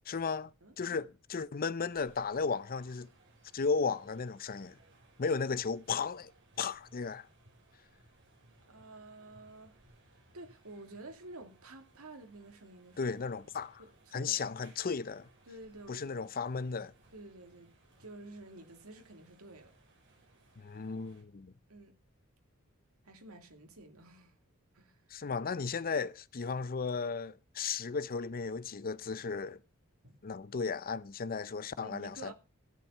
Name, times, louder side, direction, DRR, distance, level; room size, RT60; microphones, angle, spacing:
voice 1, 0.1-0.5 0.8-3.1 3.5-4.8 5.2-6.3 6.6-7.3 13.0-13.8 14.1-15.3 15.9-16.9 20.6-21.5 25.1-29.6 30.2-32.3, left 5 dB, 40° left, 0.6 m, -35 dB
voice 2, 0.6-1.0 8.7-9.8 10.1-13.1 13.4-13.5 13.8-14.4 15.5-16.3 17.1-17.7 18.0-19.7 21.7-21.9 23.0-24.4 24.7-25.0 30.0-30.2 31.8-32.3, right 2 dB, 80° right, 2.6 m, -51 dB
sound 1, 1.8-21.2, right 2 dB, 60° right, 6.7 m, -65 dB
16.5 x 7.6 x 5.5 m
head